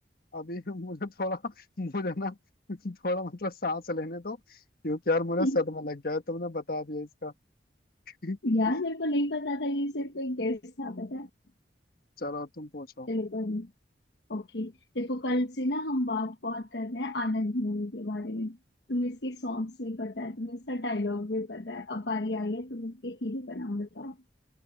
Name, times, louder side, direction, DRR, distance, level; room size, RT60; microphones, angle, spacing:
voice 1, 0.3-2.4 2.7-4.6 4.8-7.3 8.2-8.4 8.7-8.8 12.2-13.1, left 2 dB, 55° left, 1.4 m, -32 dB
voice 2, 8.4-11.3 13.1-13.7 14.3-18.6 18.9-24.2, left 1 dB, 70° left, 1.2 m, -31 dB
head